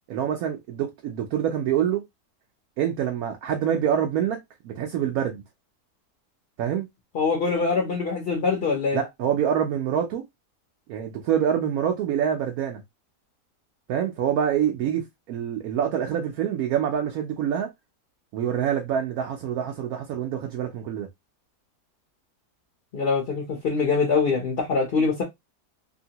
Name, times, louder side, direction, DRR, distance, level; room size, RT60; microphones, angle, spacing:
voice 1, 0.1-2.0 2.8-5.4 6.6-6.9 8.9-10.2 10.9-12.8 13.9-17.7 18.3-21.1, right 9 dB, 70° right, 1.0 m, -26 dB
voice 2, 7.1-9.0 22.9-25.2, left 4 dB, 50° left, 0.8 m, -24 dB
2.8 x 2.7 x 2.7 m
omnidirectional pair, 1.7 m